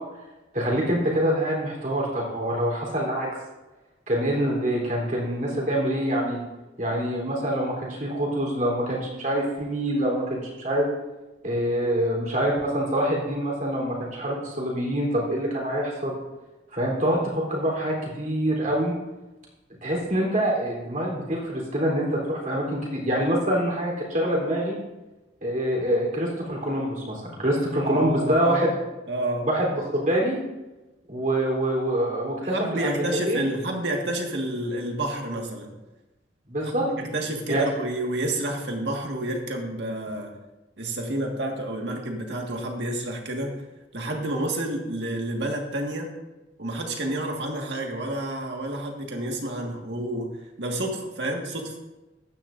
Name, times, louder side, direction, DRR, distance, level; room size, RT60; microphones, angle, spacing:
voice 1, 0.5-3.3 4.1-6.4 6.8-10.9 11.4-16.2 16.7-18.9 19.8-24.8 25.4-28.7 29.4-30.4 31.1-33.5 36.5-36.9 37.5-37.6, right 1 dB, 45° right, -2 dB, 3.7 m, -25 dB
voice 2, 27.8-28.6 29.1-29.5 32.4-35.7 36.6-40.3 40.8-43.6 43.9-46.1 46.6-50.3 50.6-51.8, right 1 dB, 65° right, 1 dB, 1.8 m, -29 dB
14.5 x 10.5 x 2.7 m, 1.1 s
head